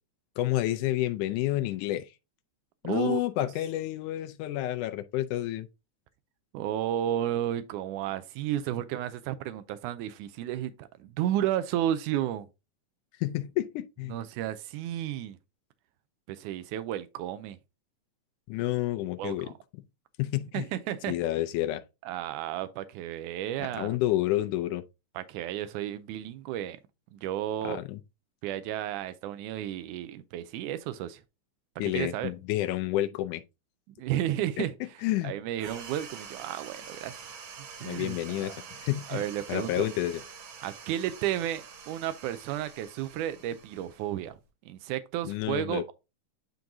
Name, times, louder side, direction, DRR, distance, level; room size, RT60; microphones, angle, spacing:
voice 1, 0.4-2.1 2.8-5.7 13.2-14.2 18.5-19.5 20.2-20.7 21.1-21.8 23.6-24.8 27.6-28.0 31.8-33.4 34.6-34.7 35.0-35.4 37.8-39.2 39.5-40.2 45.2-45.9, left 15 dB, 85° left, 2.1 m, -29 dB
voice 2, 2.8-3.2 6.5-12.5 14.1-15.4 16.3-17.6 19.2-19.5 20.5-21.1 22.1-24.0 25.2-26.8 27.1-27.8 28.4-31.2 31.8-32.3 34.0-34.7 35.2-37.3 37.8-38.6 39.1-39.9 40.6-44.4 44.7-45.9, right 12 dB, 90° right, 2.1 m, -32 dB
sound 1, 35.6-44.4, right 6 dB, 55° right, 1.6 m, -46 dB
10.5 x 3.9 x 2.7 m
omnidirectional pair, 3.5 m